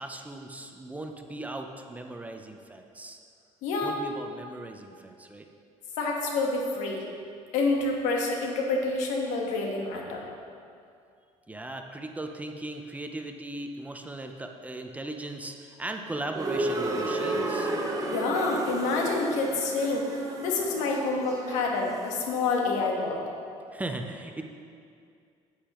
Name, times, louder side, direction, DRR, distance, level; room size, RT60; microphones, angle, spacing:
voice 1, 0.0-3.2 3.8-5.5 11.5-17.7 23.7-24.4, right 2 dB, 10° right, 4 dB, 0.6 m, -38 dB
voice 2, 3.6-4.0 6.0-7.1 7.5-10.2 18.1-20.1 20.4-23.2, left 3 dB, 85° left, 0 dB, 1.4 m, -28 dB
sound 1, 16.3-22.2, right 2 dB, 30° right, 1.0 m, -32 dB
9.5 x 8.7 x 3.0 m, 2.4 s
cardioid pair, 115°, 12 cm